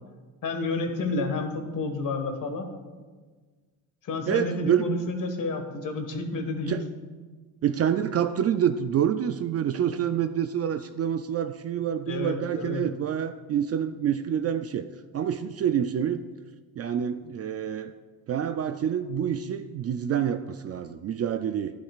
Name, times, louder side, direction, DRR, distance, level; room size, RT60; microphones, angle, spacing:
voice 1, 0.4-2.7 4.0-6.8 12.1-12.9, left 3 dB, 45° left, 6 dB, 1.6 m, -30 dB
voice 2, 4.3-5.0 6.7-6.8 7.6-14.9 15.1-16.2 16.8-17.9 18.3-21.7, right 9 dB, 35° right, 9 dB, 0.4 m, -27 dB
12.0 x 11.5 x 2.4 m, 1.4 s
cardioid pair, 105°, 42 cm